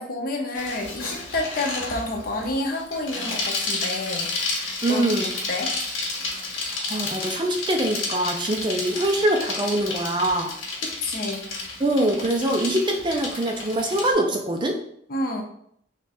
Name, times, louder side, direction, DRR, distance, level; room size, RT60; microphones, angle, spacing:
voice 1, 0.0-5.0 5.5-5.7 11.0-11.5 15.1-15.4, left 2 dB, 45° left, 1 dB, 0.7 m, -29 dB
Bicycle, 0.5-14.1, left 3 dB, 90° left, 1.0 m, -31 dB
voice 2, 4.8-5.4 6.6-10.5 11.8-14.7, right 1 dB, 25° right, 2 dB, 0.4 m, -24 dB
3.3 x 2.4 x 4.1 m, 0.67 s
head